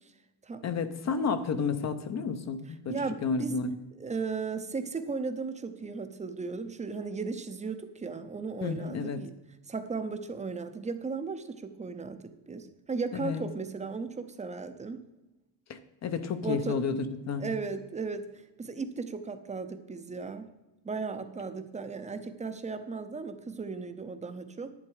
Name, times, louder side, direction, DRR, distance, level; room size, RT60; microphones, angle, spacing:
voice 1, 0.6-3.0 3.2-3.7 8.6-9.2 13.1-13.4 15.7-17.5, left 5 dB, 40° left, 10 dB, 0.7 m, -31 dB
voice 2, 2.9-3.5 3.9-9.3 9.7-15.0 16.4-16.8 17.4-20.5 20.8-24.7, right 4 dB, 15° right, 9 dB, 0.6 m, -36 dB
11.0 x 9.5 x 4.8 m, 1.0 s
cardioid pair, 165°, 44 cm